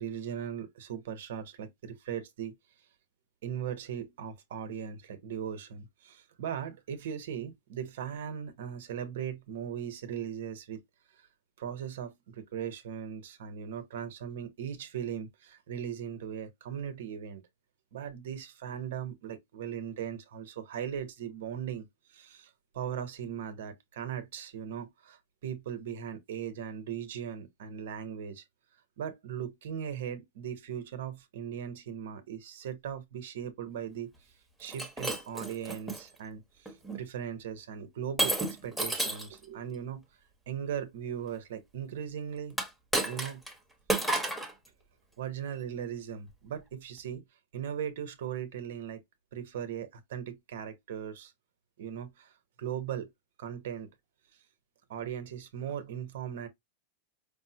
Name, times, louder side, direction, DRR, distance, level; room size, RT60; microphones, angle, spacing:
voice 1, 0.0-2.5 3.4-10.8 11.6-17.4 17.9-28.4 29.0-34.1 34.6-40.0 40.5-42.6 43.0-43.4 45.2-47.3 47.5-49.0 49.3-51.3 51.8-52.3 52.6-53.1 53.4-53.9 54.9-56.5, right 8 dB, 75° right, 1.0 m, -38 dB
Shatter, 34.6-36.0 36.7-37.0 38.2-39.3 42.5-43.5 43.9-44.5, right 2 dB, ahead, 1.1 m, -31 dB
5.3 x 2.1 x 2.8 m
supercardioid pair, 130°, 0 cm